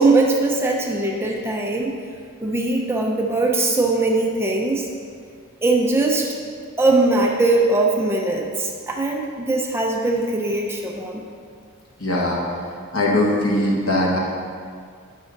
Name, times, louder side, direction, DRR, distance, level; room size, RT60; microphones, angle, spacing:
voice 1, 0.0-2.0 2.4-4.9 5.6-6.3 6.8-11.2, right 2 dB, 10° right, -1 dB, 0.7 m, -20 dB
voice 2, 12.0-12.4 12.9-14.2, left 1 dB, 70° left, -3 dB, 1.3 m, -20 dB
10.5 x 6.1 x 4.0 m, 2.1 s
head